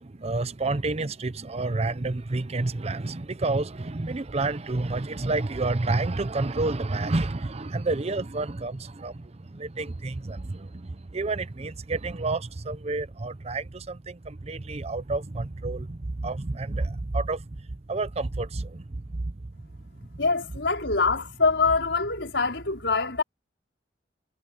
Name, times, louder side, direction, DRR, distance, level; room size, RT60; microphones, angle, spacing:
voice 1, 0.2-9.2 9.5-17.4 17.9-18.8 19.1-19.3, right 2 dB, 35° right, 0.7 m, -29 dB
voice 2, 20.2-23.2, left 4 dB, 85° left, 4.9 m, -24 dB
head